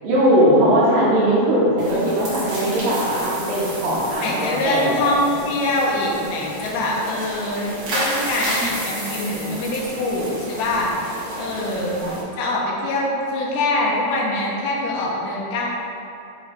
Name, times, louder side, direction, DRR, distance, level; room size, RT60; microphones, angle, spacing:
voice 1, 0.0-5.1 11.7-11.9, equal, 85° right, -8 dB, 3.6 m, -19 dB
sound 1, 1.8-12.2, right 1 dB, 55° right, 1.3 m, -31 dB
voice 2, 4.2-10.9 11.4-12.0 12.4-15.7, left 2 dB, 80° left, -3 dB, 2.7 m, -24 dB
9.4 x 3.1 x 4.1 m, 2.6 s
omnidirectional pair, 4.5 m